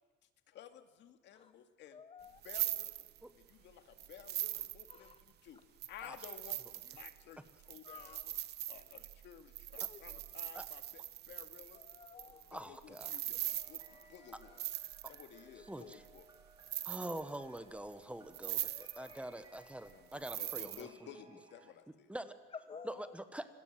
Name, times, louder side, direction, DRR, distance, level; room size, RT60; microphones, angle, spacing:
voice 1, 0.5-2.0 2.4-3.1 3.4-5.6 5.9-8.3 8.7-11.8 12.2-13.8 14.1-14.6 15.1-16.3 19.9-22.1, left 9 dB, 65° left, 8 dB, 2.2 m, -55 dB
voice 2, 1.9-2.4 4.9-5.1 7.8-8.2 9.8-10.2 11.7-12.5 13.9-14.6 15.6-16.0 18.6-19.2 22.5-23.2, left 6 dB, 25° left, 10 dB, 0.9 m, -53 dB
sound 1, 2.2-3.5 4.0-5.3 5.8-15.4 15.9-16.4 16.6-17.6 17.9-18.0 18.3-19.2 19.5-20.8, right 12 dB, 55° right, 1.1 m, -41 dB
voice 3, 12.5-13.1 13.4-13.5 15.7-16.0 16.8-20.9 22.1-22.3 22.8-23.5, right 1 dB, 5° right, 11 dB, 1.2 m, -45 dB
sound 2, 13.4-21.7, right 2 dB, 20° right, 3.0 m, -63 dB
26.5 x 20.5 x 7.5 m, 1.5 s
cardioid pair, 145°, 20 cm